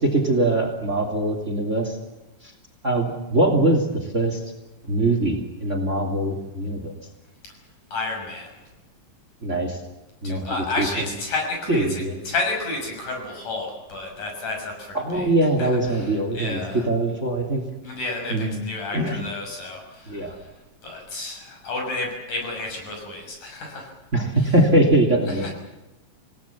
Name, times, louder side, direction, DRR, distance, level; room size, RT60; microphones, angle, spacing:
voice 1, 0.0-1.9 2.4-2.5 2.8-4.4 4.9-6.9 9.4-9.8 10.2-11.1 11.7-12.2 14.9-17.6 18.3-18.6 18.9-19.2 20.1-20.3 24.1-25.5, right 1 dB, 20° right, 5 dB, 3.0 m, -22 dB
voice 2, 7.9-8.5 10.2-15.3 15.6-16.8 17.8-20.4 20.8-23.9 25.3-25.5, left 2 dB, 70° left, 2 dB, 8.0 m, -31 dB
28.5 x 18.5 x 7.3 m, 1.0 s
omnidirectional pair, 3.7 m